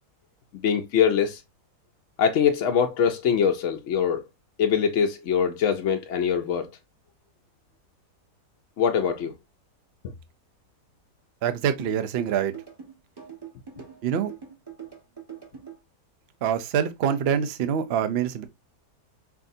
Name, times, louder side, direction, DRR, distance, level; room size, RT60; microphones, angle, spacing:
voice 1, 0.6-1.4 2.2-4.2 4.6-6.7 8.8-9.3, left 7 dB, 65° left, 0.8 m, -23 dB
voice 2, 11.4-12.5 14.0-14.3 16.4-18.4, right 8 dB, 65° right, 0.6 m, -25 dB
sound 1, 11.8-15.8, right 8 dB, 15° right, 1.1 m, -42 dB
5.7 x 2.6 x 2.5 m
omnidirectional pair, 1.8 m